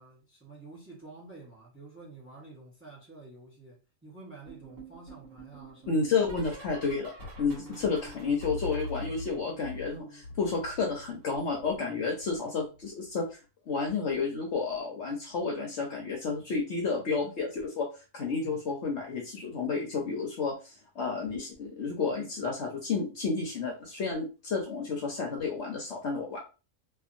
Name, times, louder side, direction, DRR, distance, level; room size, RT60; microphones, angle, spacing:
voice 1, 0.0-6.1 7.7-7.9 18.4-18.6, right 3 dB, 10° right, 0.7 m, -50 dB
sound 1, 4.5-11.2 11.5-13.1 14.1-14.4 14.7-15.0 16.6-16.9 17.2-17.4 19.0-19.1, left 1 dB, 65° right, 1.6 m, -44 dB
voice 2, 5.9-7.1 7.4-13.4 13.7-26.4, left 4 dB, 60° left, 0.8 m, -31 dB
2.6 x 2.6 x 2.5 m
omnidirectional pair, 1.5 m